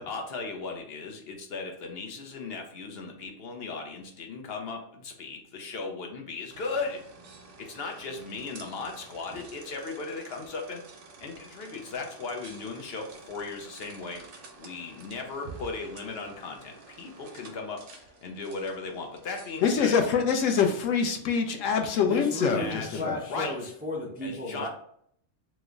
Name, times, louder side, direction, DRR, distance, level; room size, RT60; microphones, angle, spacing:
voice 1, 0.0-7.0 7.6-10.8 11.2-19.9 22.5-23.7 24.2-24.7, left 4 dB, 60° left, 2 dB, 0.8 m, -37 dB
sound 1, 6.5-20.9, right 3 dB, 70° right, 0.9 m, -50 dB
voice 2, 19.6-23.2, left 6 dB, 85° left, 5 dB, 1.0 m, -25 dB
voice 3, 22.0-24.7, left 1 dB, 15° right, -3 dB, 0.4 m, -33 dB
3.0 x 2.1 x 3.6 m, 0.65 s
omnidirectional pair, 1.3 m